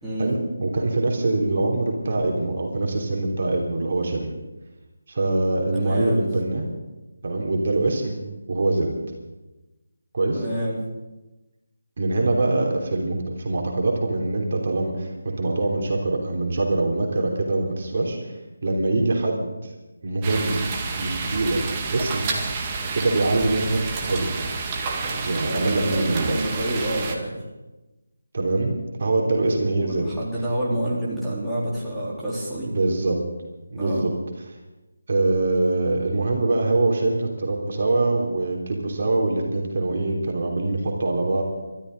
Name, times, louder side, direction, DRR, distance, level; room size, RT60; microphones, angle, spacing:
voice 1, 0.2-4.3 5.1-6.6 7.2-9.0 10.1-10.4 12.0-18.3 18.6-19.7 20.0-20.7 21.0-22.3 22.9-24.3 25.2-26.5 28.3-30.1 30.7-30.8 32.7-33.2 33.7-34.1 35.1-41.4, right 2 dB, 45° right, 0 dB, 3.2 m, -24 dB
voice 2, 5.7-6.3 10.3-10.8 25.4-27.4 29.8-32.7 33.8-34.0, right 1 dB, ahead, -12 dB, 3.6 m, -28 dB
sound 1, 20.2-27.1, right 4 dB, 20° right, 1.8 m, -29 dB
27.5 x 13.0 x 3.9 m, 1.1 s
figure-of-eight pair, 155°, 0 cm